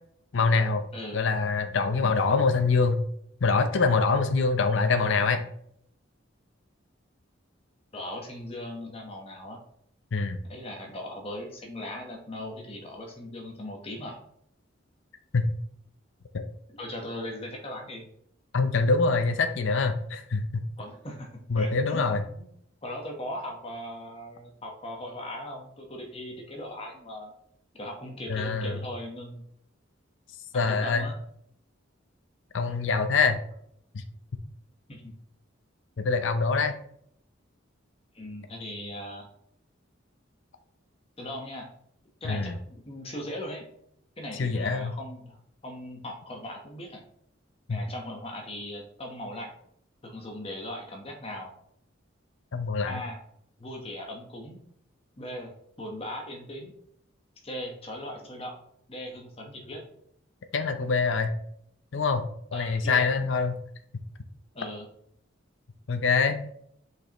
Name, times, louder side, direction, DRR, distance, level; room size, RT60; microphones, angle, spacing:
voice 1, 0.3-0.8 1.1-3.0 3.4-5.4 10.1-10.4 15.3-15.5 16.3-16.4 18.5-20.6 21.5-22.2 28.3-28.8 30.5-31.1 32.5-33.4 33.9-34.0 36.0-36.8 42.2-42.5 44.3-44.9 47.7-47.8 52.5-53.0 60.5-61.3 61.9-62.2 62.5-63.6 65.9-66.4, left 4 dB, 70° left, 7 dB, 0.6 m, -24 dB
voice 2, 7.9-9.6 10.5-14.2 16.8-18.1 20.8-22.5 22.8-27.3 27.7-29.4 30.7-31.2 34.9-35.1 38.1-39.3 41.2-41.7 42.2-43.7 44.2-45.4 45.6-47.0 47.7-49.5 50.0-51.5 52.9-53.2 53.6-54.6 55.2-55.5 55.8-56.7 57.4-58.6 58.9-59.9 62.5-63.1 64.5-64.9, left 1 dB, 30° left, 1 dB, 1.1 m, -39 dB
6.4 x 5.2 x 3.0 m, 0.69 s
head